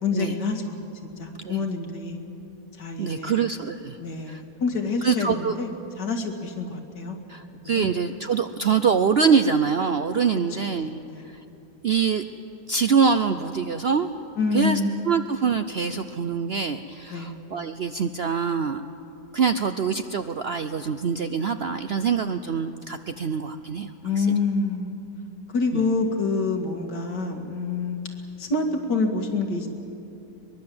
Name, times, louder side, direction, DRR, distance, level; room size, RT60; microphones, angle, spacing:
voice 1, 0.0-0.8 1.2-2.2 2.8-3.4 4.0-5.7 6.0-7.2 7.5-7.9 11.1-11.3 14.4-15.1 17.1-17.3 24.0-25.0 25.5-28.0 28.4-29.7, left 3 dB, 90° left, 3 dB, 2.7 m, -27 dB
voice 2, 3.0-4.0 4.3-4.4 5.0-5.6 7.3-11.0 11.3-11.4 11.8-12.2 12.7-14.1 14.5-14.8 15.0-18.8 19.3-23.9 24.2-24.3 25.7-25.8, right 6 dB, 65° right, 9 dB, 0.6 m, -24 dB
23.0 x 21.0 x 7.8 m, 2.8 s
omnidirectional pair, 1.8 m